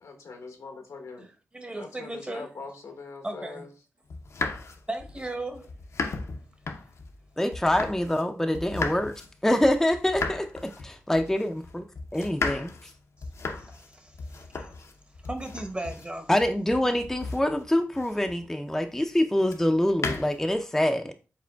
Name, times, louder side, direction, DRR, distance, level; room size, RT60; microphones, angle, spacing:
voice 1, 0.0-1.3 1.8-3.7, left 4 dB, 85° left, 0.9 m, -42 dB
voice 2, 1.2-2.5 3.2-3.7 4.9-5.7 13.6-14.7 15.2-16.3, right 2 dB, 20° right, 0.8 m, -36 dB
sound 1, 4.1-8.3 8.5-18.5 19.5-20.6, left 4 dB, 65° left, 0.5 m, -36 dB
voice 3, 7.4-9.1 9.4-10.5 10.8-11.8 12.1-12.7 16.3-21.1, left 1 dB, 5° left, 0.4 m, -25 dB
4.9 x 3.6 x 2.2 m
cardioid pair, 60°, 5 cm